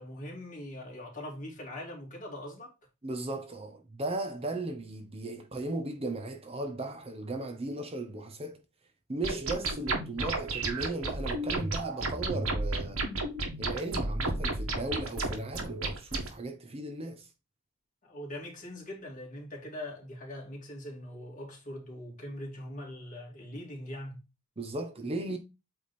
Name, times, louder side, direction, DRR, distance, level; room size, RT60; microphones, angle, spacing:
voice 1, 0.0-2.7 18.0-24.2, left 1 dB, 35° left, 2.6 m, -42 dB
voice 2, 3.0-8.6 9.1-13.0 13.6-17.3 24.6-25.4, right 2 dB, 25° right, 0.8 m, -36 dB
sound 1, 9.2-16.3, right 2 dB, 75° right, 1.8 m, -32 dB
8.4 x 3.5 x 4.3 m
head